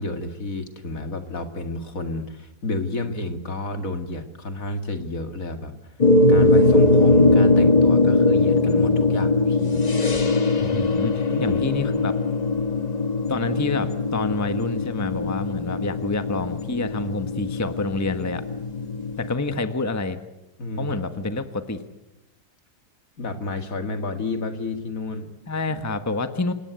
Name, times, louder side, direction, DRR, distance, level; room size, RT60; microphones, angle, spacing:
voice 1, 0.0-5.9 6.3-9.8 11.3-11.6 20.6-21.3 23.2-25.3, left 2 dB, 60° left, 7 dB, 2.6 m, -31 dB
sound 1, 6.0-19.3, left 2 dB, 30° left, 1.2 m, -20 dB
voice 2, 10.6-12.1 13.3-18.4 19.2-20.2 20.8-21.9 25.5-26.5, left 2 dB, 10° left, 9 dB, 1.3 m, -28 dB
29.0 x 18.5 x 8.2 m, 0.95 s
omnidirectional pair, 1.7 m